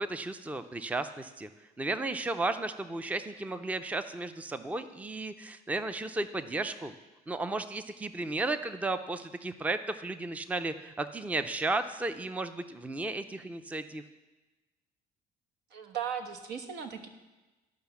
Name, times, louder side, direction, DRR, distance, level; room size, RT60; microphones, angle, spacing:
voice 1, 0.0-1.5 1.8-6.9 7.3-14.0, right 2 dB, 10° right, 11 dB, 0.5 m, -34 dB
voice 2, 15.7-17.1, right 8 dB, 80° right, 7 dB, 1.2 m, -37 dB
12.5 x 5.7 x 7.0 m, 1.1 s
cardioid pair, 110°, 17 cm